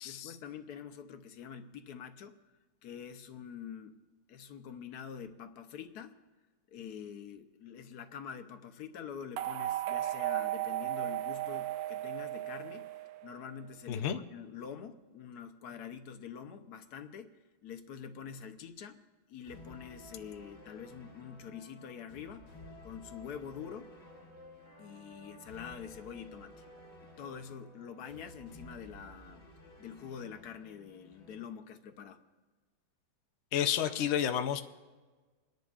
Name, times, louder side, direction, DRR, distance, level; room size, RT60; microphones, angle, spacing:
voice 1, 0.0-2.5 2.8-4.0 4.3-6.2 6.7-12.9 13.2-17.4 17.6-19.0 19.3-22.5 22.8-23.9 24.8-26.6 27.0-29.5 29.8-32.2, left 7 dB, 65° left, 8 dB, 1.2 m, -46 dB
sound 1, 9.4-13.6, right 14 dB, 75° right, 1.2 m, -35 dB
voice 2, 13.9-14.2 33.5-34.6, left 9 dB, 80° left, 7 dB, 0.6 m, -30 dB
sound 2, 19.5-31.4, left 1 dB, 40° left, 1.5 m, -54 dB
28.5 x 10.5 x 2.5 m, 1.4 s
omnidirectional pair, 2.0 m